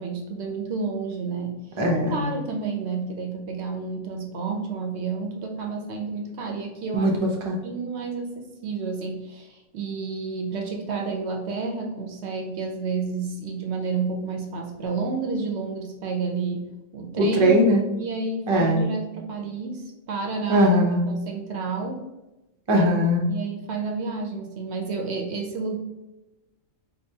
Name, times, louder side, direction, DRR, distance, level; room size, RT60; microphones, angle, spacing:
voice 1, 0.0-1.6 2.0-7.1 7.6-17.5 18.0-20.7 21.1-22.0 23.3-25.8, right 4 dB, 65° right, 2 dB, 0.7 m, -30 dB
voice 2, 1.8-2.2 6.9-7.6 17.2-17.8 18.5-18.8 20.5-21.0 22.7-23.3, equal, 40° right, 0 dB, 0.4 m, -20 dB
4.8 x 2.3 x 2.7 m, 1.0 s
omnidirectional pair, 1.4 m